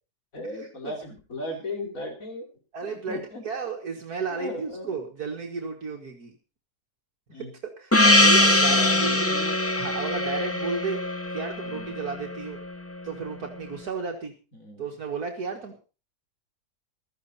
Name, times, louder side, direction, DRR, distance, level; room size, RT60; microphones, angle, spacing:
voice 1, 0.3-2.5 2.8-3.4 4.3-5.1 7.3-7.6 8.6-9.6 11.6-11.9 14.5-14.8, left 2 dB, 55° left, 2 dB, 3.8 m, -37 dB
voice 2, 2.7-6.4 7.4-7.5 7.8-9.4 9.8-11.0 11.3-12.6 13.0-14.4 14.8-15.8, right 5 dB, 70° right, 1 dB, 2.1 m, -33 dB
Gong, 7.9-12.7, left 1 dB, 15° left, 0.6 m, -22 dB
15.5 x 13.0 x 4.2 m, 0.34 s
omnidirectional pair, 1.7 m